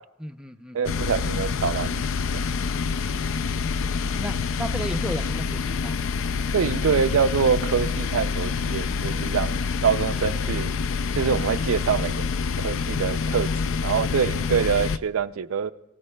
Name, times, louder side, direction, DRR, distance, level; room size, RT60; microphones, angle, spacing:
voice 1, 0.2-1.0 3.1-3.6 4.2-6.0 14.6-14.7, right 1 dB, 5° right, 5 dB, 0.5 m, -35 dB
voice 2, 0.7-2.0 2.3-2.4 6.5-10.7 11.2-12.2 12.6-13.5 13.8-15.7, right 6 dB, 85° right, 12 dB, 0.4 m, -25 dB
sound 1, 0.8-15.0, left 5 dB, 65° left, 0.4 m, -27 dB
26.5 x 16.5 x 2.2 m, 0.97 s
head